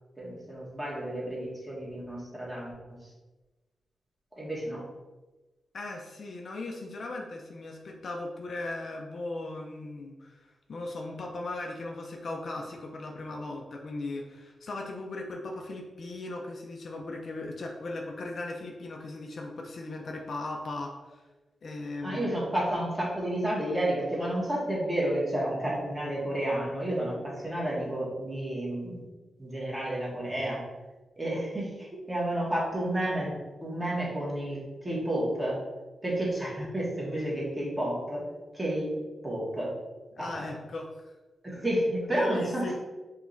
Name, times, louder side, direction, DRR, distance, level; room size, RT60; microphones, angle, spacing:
voice 1, 0.2-3.0 4.4-4.8 22.0-29.0 29.4-30.6 31.2-33.4 33.6-35.6 36.0-38.2 38.5-38.9 39.2-39.7 40.2-40.4 41.4-42.8, right 1 dB, 15° right, -6 dB, 1.2 m, -31 dB
voice 2, 5.7-21.2 21.6-22.4 40.1-41.1 42.1-42.8, left 2 dB, 55° left, 1 dB, 0.5 m, -38 dB
4.9 x 2.9 x 2.6 m, 1.2 s
wide cardioid pair, 110°, 0 cm